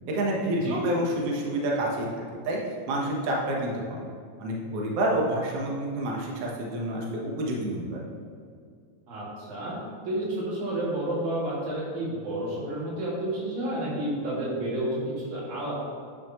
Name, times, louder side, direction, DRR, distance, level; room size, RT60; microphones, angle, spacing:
voice 1, 0.1-2.1 2.5-2.6 2.9-4.0 4.4-8.1, right 1 dB, 65° right, -2 dB, 1.8 m, -28 dB
voice 2, 9.1-9.7 10.1-15.7, right 1 dB, 85° right, -7 dB, 3.6 m, -30 dB
10.0 x 6.0 x 2.9 m, 2.2 s
omnidirectional pair, 3.3 m